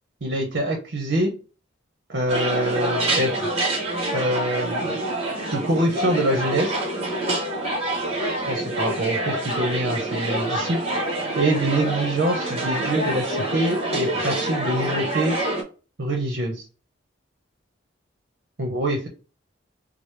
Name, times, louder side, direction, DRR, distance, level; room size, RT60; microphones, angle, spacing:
voice 1, 0.2-1.3 2.1-3.5 4.1-5.0 5.5-6.8 8.5-10.8 11.4-15.4 16.0-16.6 18.6-19.1, right 1 dB, 60° right, 1 dB, 0.7 m, -25 dB
sound 1, 2.3-15.6, right 1 dB, 30° right, 0.9 m, -26 dB
4.7 x 2.0 x 3.2 m, 0.35 s
head